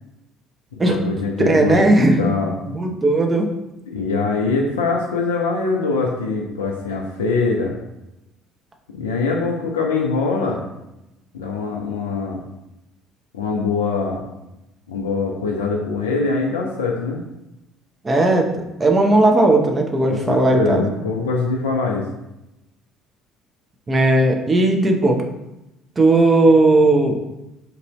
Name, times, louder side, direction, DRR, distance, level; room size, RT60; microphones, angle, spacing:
voice 1, 0.7-1.8 2.2-2.5 3.9-7.7 8.9-10.6 11.3-12.4 13.3-14.2 14.9-17.2 20.1-22.1, left 4 dB, 75° left, 0 dB, 0.3 m, -23 dB
voice 2, 1.4-2.4 2.6-3.5 18.0-20.8 23.9-25.2 26.0-27.1, right 2 dB, 25° right, 2 dB, 0.6 m, -16 dB
2.9 x 2.6 x 2.9 m, 0.93 s
figure-of-eight pair, 55°, 0 cm